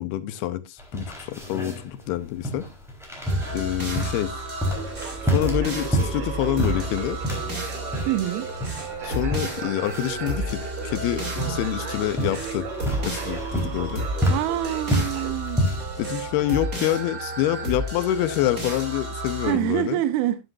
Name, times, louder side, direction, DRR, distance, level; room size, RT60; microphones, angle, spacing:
voice 1, 0.0-2.7 3.5-4.4 5.2-7.2 9.0-12.7 13.0-14.0 16.0-20.0, left 13 dB, 80° left, 2.8 m, -27 dB
sound 1, 0.8-16.0, equal, ahead, 3.4 m, -29 dB
sound 2, 3.2-19.5, right 1 dB, 25° right, 2.7 m, -32 dB
Conversation, 4.8-15.3, right 6 dB, 60° right, 4.1 m, -38 dB
voice 2, 8.1-8.5 14.3-15.6 19.4-20.4, right 13 dB, 80° right, 2.7 m, -25 dB
11.5 x 11.0 x 2.5 m
omnidirectional pair, 4.6 m